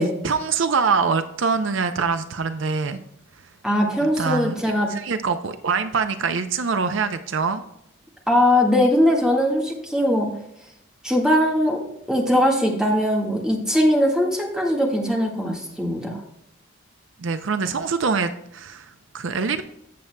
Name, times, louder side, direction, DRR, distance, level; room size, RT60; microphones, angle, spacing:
voice 1, 0.2-3.0 4.0-4.6 4.9-7.6 17.2-19.6, right 5 dB, 65° right, 0.5 m, -24 dB
voice 2, 3.6-4.9 8.3-10.3 11.0-11.8 12.1-16.2, left 1 dB, 5° right, 1.6 m, -20 dB
16.0 x 7.1 x 2.2 m
head